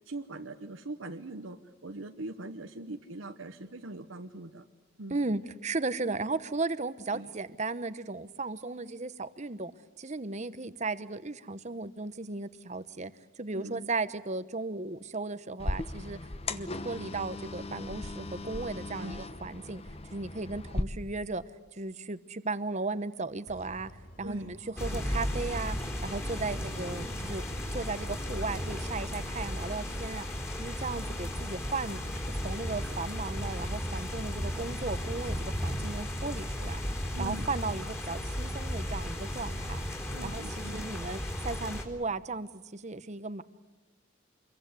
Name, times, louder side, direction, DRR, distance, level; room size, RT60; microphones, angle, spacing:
voice 1, 0.1-4.6 5.0-5.2 7.1-7.3 13.5-13.9 19.0-19.2 24.2-24.6 24.9-25.1 26.5-26.7 37.1-37.5 40.1-40.9, right 2 dB, 80° right, 6 dB, 1.1 m, -42 dB
voice 2, 5.1-9.7 10.0-16.2 16.5-19.8 20.1-21.4 21.7-23.9 24.2-27.4 27.7-30.3 30.6-32.0 32.4-36.8 37.2-39.8 40.2-43.4, right 3 dB, 35° right, 14 dB, 0.9 m, -36 dB
sound 1, 15.6-20.8, left 2 dB, 30° left, 1.0 m, -37 dB
sound 2, 23.5-30.3, equal, 50° left, 4.3 m, -54 dB
sound 3, 24.8-41.8, equal, 10° left, 4.0 m, -35 dB
26.5 x 23.0 x 8.2 m, 1.2 s
head